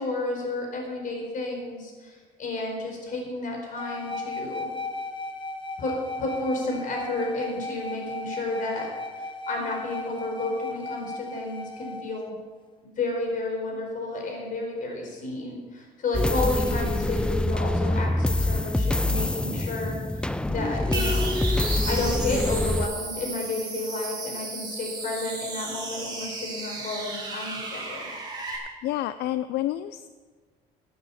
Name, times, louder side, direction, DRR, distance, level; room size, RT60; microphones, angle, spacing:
voice 1, 0.0-4.7 5.8-8.9 9.2-12.4 12.8-20.0 20.5-21.4 21.9-28.1, left 2 dB, 50° left, 1 dB, 4.7 m, -31 dB
sound 1, 3.8-12.0, left 2 dB, 30° left, 1.3 m, -36 dB
sound 2, 16.1-22.9, left 1 dB, 5° left, 0.4 m, -25 dB
sound 3, 20.9-28.6, right 3 dB, 25° right, 4.1 m, -34 dB
voice 2, 28.8-30.1, left 14 dB, 75° left, 13 dB, 0.5 m, -29 dB
16.0 x 9.3 x 5.8 m, 1.5 s
cardioid pair, 110°, 17 cm